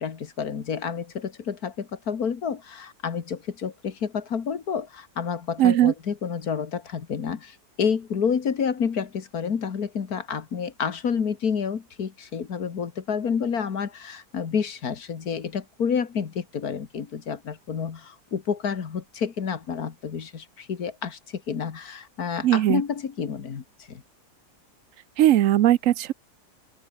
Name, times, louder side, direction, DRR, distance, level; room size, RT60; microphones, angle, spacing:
voice 1, 0.0-24.0, left 6 dB, 65° left, 2.1 m, -29 dB
voice 2, 5.6-5.9 22.4-22.8 25.2-26.1, right 12 dB, 65° right, 0.9 m, -19 dB
omnidirectional pair, 1.7 m